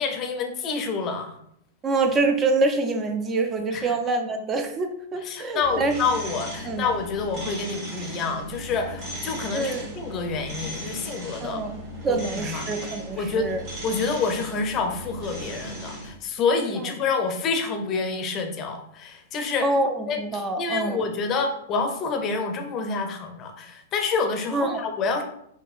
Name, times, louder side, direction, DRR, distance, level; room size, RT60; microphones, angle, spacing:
voice 1, 0.0-1.4 3.7-3.9 5.2-11.6 12.1-12.7 13.1-13.5 13.8-19.7 20.1-25.2, left 4 dB, 30° left, 5 dB, 0.5 m, -28 dB
voice 2, 1.8-6.0 6.6-6.9 9.5-9.9 11.4-13.6 19.6-21.1 24.5-24.8, right 3 dB, 25° right, 6 dB, 0.4 m, -26 dB
sound 1, 5.6-16.1, equal, 40° right, 1.2 m, -37 dB
5.0 x 2.2 x 2.4 m, 0.71 s
figure-of-eight pair, 100°, 0 cm